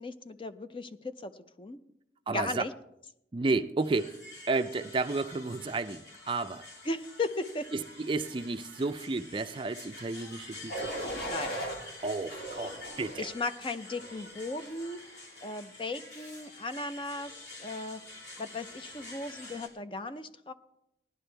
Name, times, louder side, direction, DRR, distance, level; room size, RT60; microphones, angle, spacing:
voice 1, 0.0-1.3 1.6-1.8 2.3-2.7 6.9-7.6 11.3-11.5 13.2-15.0 15.4-17.3 17.6-18.0 18.4-20.5, left 2 dB, 30° left, 10 dB, 0.5 m, -36 dB
voice 2, 2.3-2.6 3.3-4.2 4.5-6.7 7.7-10.9 12.0-13.3, right 3 dB, 30° right, 10 dB, 0.4 m, -32 dB
sound 1, 3.8-19.7, left 2 dB, 85° left, 3.2 m, -48 dB
sound 2, 10.7-11.8 12.3-13.3 13.9-14.3, right 1 dB, 55° left, 3.4 m, -37 dB
18.0 x 11.0 x 3.4 m, 0.82 s
head